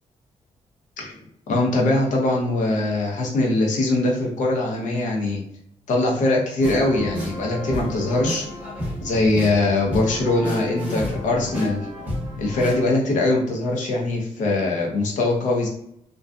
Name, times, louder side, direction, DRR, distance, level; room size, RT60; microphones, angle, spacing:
voice 1, 1.5-5.4 5.9-8.5 9.0-11.9 12.4-15.7, left 2 dB, 85° left, 0 dB, 0.7 m, -22 dB
sound 1, 6.6-12.9, equal, 10° right, 0.6 m, -31 dB
2.5 x 2.3 x 2.2 m, 0.73 s
wide cardioid pair, 150°, 12 cm